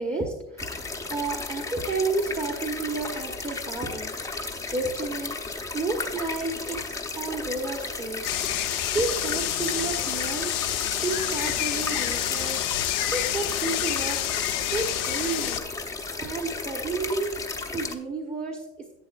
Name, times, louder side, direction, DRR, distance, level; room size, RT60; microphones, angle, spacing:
voice 1, 0.0-4.4 4.7-5.3 5.7-14.3 14.7-15.9 16.2-18.7, right 3 dB, 20° right, 2 dB, 1.1 m, -32 dB
sound 1, 0.6-17.9, left 3 dB, 10° left, 0.7 m, -34 dB
sound 2, 8.2-15.6, left 14 dB, 65° left, 0.8 m, -28 dB
11.5 x 8.2 x 2.4 m, 0.86 s
supercardioid pair, 115°, 35 cm